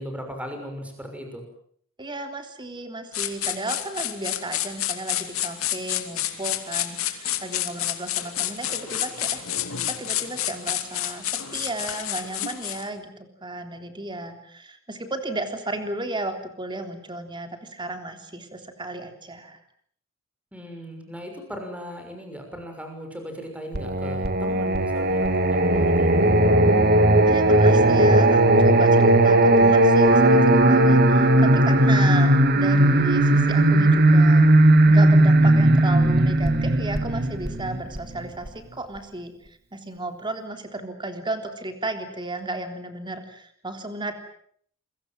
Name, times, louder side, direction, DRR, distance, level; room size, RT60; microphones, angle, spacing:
voice 1, 0.0-1.4 20.5-26.4, equal, 5° right, 4 dB, 6.4 m, -37 dB
voice 2, 2.0-9.4 9.9-19.6 27.3-34.5 34.9-44.1, right 2 dB, 20° right, 6 dB, 3.5 m, -34 dB
sound 1, 3.1-12.9, left 12 dB, 80° left, 2.6 m, -29 dB
Singing, 23.7-38.5, right 1 dB, 50° right, 2.3 m, -17 dB
28.0 x 23.0 x 7.6 m, 0.63 s
head